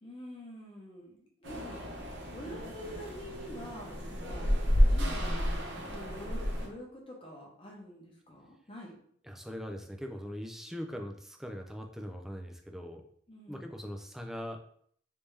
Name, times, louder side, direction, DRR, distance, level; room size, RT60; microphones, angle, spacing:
voice 1, 0.0-1.8 2.3-4.4 4.8-5.5 5.8-8.9 13.3-13.7, equal, 30° left, -1 dB, 0.9 m, -46 dB
sound 1, 1.4-6.7, equal, 70° right, 0.8 m, -30 dB
voice 2, 9.2-13.0 13.5-14.6, equal, ahead, 3 dB, 0.3 m, -41 dB
3.4 x 2.7 x 3.2 m, 0.63 s
head